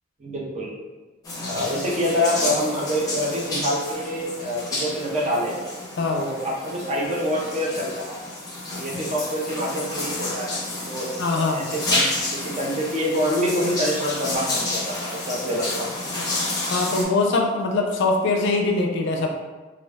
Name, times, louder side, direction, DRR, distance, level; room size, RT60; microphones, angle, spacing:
voice 1, 0.2-0.8 1.4-5.6 6.1-8.2 8.7-10.6 10.9-15.9, equal, 35° right, -2 dB, 0.5 m, -26 dB
sound 1, 1.2-17.0, left 2 dB, 20° left, 0.6 m, -30 dB
voice 2, 6.0-6.3 11.2-11.6 16.7-19.4, left 3 dB, 60° left, 1 dB, 0.4 m, -22 dB
2.3 x 2.2 x 3.4 m, 1.3 s
head